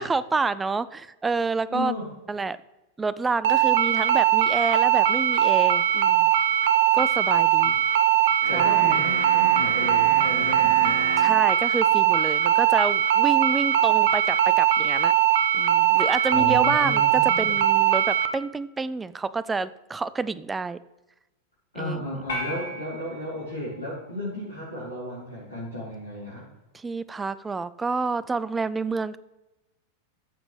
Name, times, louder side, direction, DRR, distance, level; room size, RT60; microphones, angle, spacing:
voice 1, 0.0-1.9 2.3-2.6 3.0-6.3 6.9-7.7 8.5-9.0 11.2-15.1 15.5-20.8 21.8-22.0 26.7-29.2, right 4 dB, 15° right, 16 dB, 0.4 m, -28 dB
voice 2, 1.7-2.1 7.6-7.9 8.5-11.2 16.3-17.5 21.7-26.4, left 1 dB, 80° left, -8 dB, 3.4 m, -34 dB
sound 1, 3.4-18.3, right 10 dB, 55° right, 0.6 m, -20 dB
sound 2, 8.4-11.4, right 3 dB, 70° right, 2.0 m, -34 dB
sound 3, 22.3-24.8, left 1 dB, 60° left, 1.9 m, -37 dB
14.0 x 7.2 x 3.2 m, 1.0 s
figure-of-eight pair, 90°, 0 cm